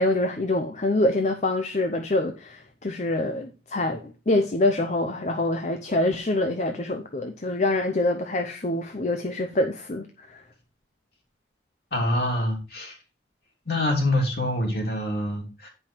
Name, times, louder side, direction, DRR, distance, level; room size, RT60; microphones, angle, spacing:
voice 1, 0.0-10.4, left 2 dB, 40° left, 0.7 m, -25 dB
voice 2, 11.9-13.0 13.6-15.7, left 1 dB, 60° left, 3.2 m, -25 dB
9.0 x 5.5 x 4.4 m
head